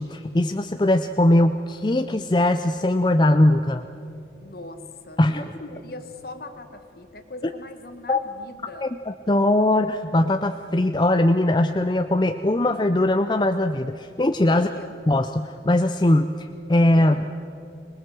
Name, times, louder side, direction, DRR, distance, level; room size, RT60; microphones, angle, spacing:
voice 1, 0.0-3.8 5.2-5.5 8.1-8.2 8.8-14.7 15.1-17.3, left 1 dB, 25° left, 8 dB, 0.5 m, -20 dB
voice 2, 4.4-8.9 14.5-15.0 16.9-17.3, left 2 dB, 55° left, 8 dB, 1.7 m, -40 dB
25.5 x 19.5 x 7.7 m, 2.7 s
head